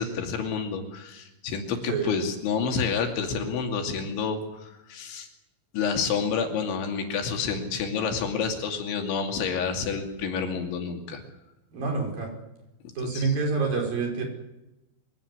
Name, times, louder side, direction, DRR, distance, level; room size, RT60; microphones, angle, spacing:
voice 1, 0.0-5.3 5.7-11.2 13.0-13.3, left 6 dB, 75° left, 4 dB, 4.9 m, -29 dB
voice 2, 11.7-12.3 13.0-14.2, right 4 dB, 50° right, 2 dB, 6.7 m, -27 dB
24.5 x 17.5 x 9.7 m, 0.96 s
omnidirectional pair, 5.5 m